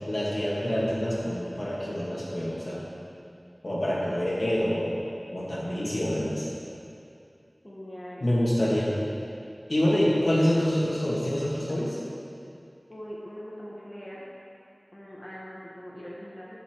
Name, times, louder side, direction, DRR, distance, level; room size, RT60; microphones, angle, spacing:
voice 1, 0.0-2.8 3.6-4.9 5.3-6.5 8.2-8.9 9.7-12.0, equal, 60° left, -6 dB, 2.3 m, -26 dB
voice 2, 7.6-8.3 12.9-14.3 14.9-16.6, equal, 30° left, -6 dB, 1.6 m, -41 dB
14.5 x 5.9 x 4.8 m, 2.5 s
wide cardioid pair, 45°, 0 cm